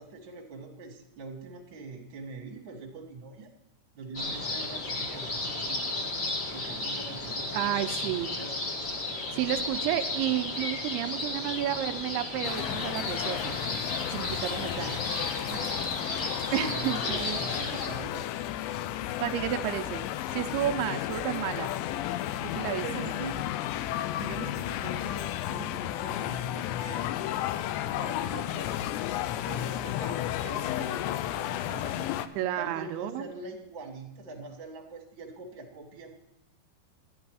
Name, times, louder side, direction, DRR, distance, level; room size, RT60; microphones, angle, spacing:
voice 1, 0.0-3.5 3.9-5.9 6.5-8.7 15.5-18.8 22.8-23.4 24.2-27.1 28.0-29.0 29.4-32.1 32.6-36.1, right 3 dB, 50° right, 0 dB, 1.4 m, -43 dB
sound 1, 4.1-17.9, left 2 dB, 60° left, 1.2 m, -34 dB
voice 2, 7.5-8.3 9.3-13.6 14.1-15.0 16.5-17.4 19.2-21.7 22.4-22.8 32.4-33.3, right 12 dB, 85° right, 8 dB, 2.3 m, -31 dB
sound 2, 12.4-32.3, left 13 dB, 85° left, 2.8 m, -33 dB
14.0 x 10.5 x 4.8 m, 0.85 s
omnidirectional pair, 5.2 m